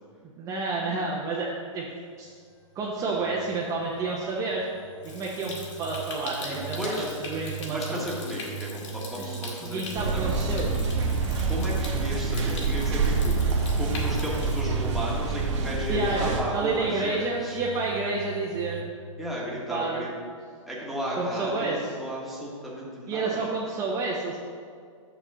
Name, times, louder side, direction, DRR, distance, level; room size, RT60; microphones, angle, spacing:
voice 1, 0.4-1.8 2.2-2.3 2.7-4.7 5.1-6.8 7.2-8.0 9.2-10.7 15.9-18.8 19.7-20.1 21.2-21.9 23.1-24.4, right 3 dB, 20° right, -4 dB, 0.9 m, -30 dB
sound 1, 2.5-18.8, right 7 dB, 45° left, 1.7 m, -40 dB
Stream, 5.0-14.6, left 3 dB, 60° left, 2.0 m, -42 dB
voice 2, 6.8-7.1 7.7-10.5 11.5-17.6 19.2-20.1 20.7-23.5, equal, ahead, -6 dB, 1.5 m, -34 dB
sound 2, 10.0-16.4, right 4 dB, 60° right, 1.5 m, -27 dB
6.2 x 6.0 x 6.8 m, 2.1 s
hypercardioid pair, 150°, 17 cm